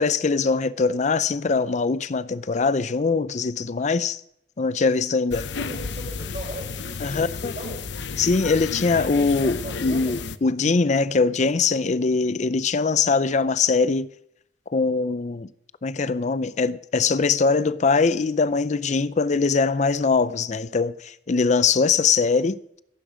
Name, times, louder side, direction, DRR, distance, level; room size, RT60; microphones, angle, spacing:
voice 1, 0.0-4.2 4.6-5.5 7.0-7.5 8.2-14.1 14.7-15.5 15.8-22.6, left 4 dB, 40° left, 0.5 m, -22 dB
sound 1, 5.3-10.4, left 4 dB, 85° left, 0.8 m, -32 dB
voice 2, 5.6-7.8 9.1-10.2, right 1 dB, 40° right, 5.9 m, -38 dB
16.5 x 15.0 x 5.0 m
head